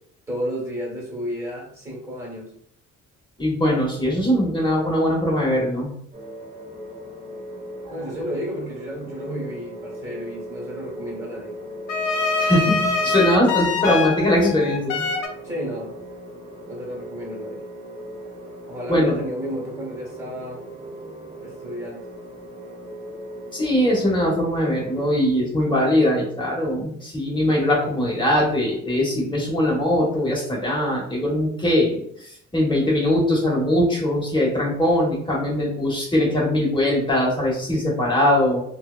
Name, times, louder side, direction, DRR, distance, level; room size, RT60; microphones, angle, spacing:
voice 1, 0.3-2.5 7.9-11.6 15.4-16.1 16.6-17.6 18.7-20.6 21.4-22.1, equal, 10° right, -2 dB, 1.2 m, -32 dB
voice 2, 3.4-5.9 7.8-7.9 12.4-15.1 18.9-19.2 23.5-38.6, left 1 dB, 15° left, -4 dB, 1.2 m, -21 dB
sound 1, 6.1-25.2, right 1 dB, 25° right, 0.7 m, -39 dB
sound 2, 11.9-15.3, left 4 dB, 90° left, 0.6 m, -24 dB
2.7 x 2.1 x 2.4 m, 0.69 s
cardioid pair, 90°, 30 cm